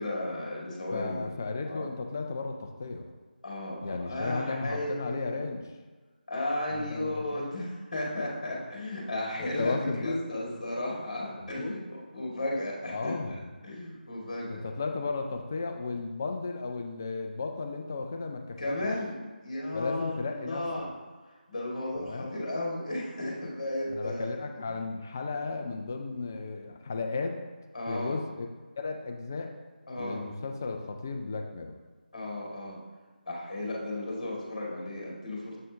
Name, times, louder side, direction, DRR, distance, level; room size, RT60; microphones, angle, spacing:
voice 1, 0.0-1.9 3.4-5.5 6.3-13.4 13.6-14.6 18.6-20.9 21.5-24.3 24.7-24.9 27.7-28.2 29.9-30.2 32.1-32.8 33.3-35.6, left 1 dB, 40° left, -3 dB, 2.0 m, -34 dB
voice 2, 0.9-3.1 3.8-5.6 6.7-7.6 9.2-10.2 11.4-11.7 12.9-13.4 14.5-18.9 19.7-20.9 22.0-22.3 23.9-27.4 27.9-28.5 28.8-29.5 30.0-31.7, left 4 dB, 20° left, 4 dB, 0.3 m, -35 dB
7.4 x 4.2 x 3.5 m, 1.4 s
figure-of-eight pair, 160°, 5 cm